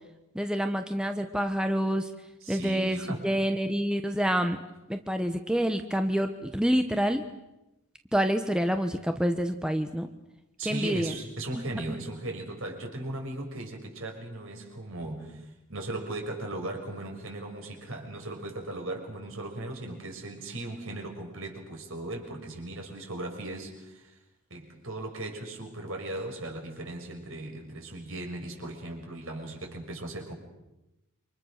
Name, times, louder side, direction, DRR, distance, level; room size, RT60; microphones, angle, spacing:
voice 1, 0.3-2.1 2.5-4.6 4.9-7.3 8.1-10.1 10.6-11.1 11.6-11.7, equal, 5° right, 6 dB, 1.1 m, -27 dB
voice 2, 2.4-3.3 10.6-24.2 24.5-30.3, right 2 dB, 65° right, 2 dB, 6.3 m, -37 dB
28.5 x 26.0 x 6.6 m, 0.96 s
head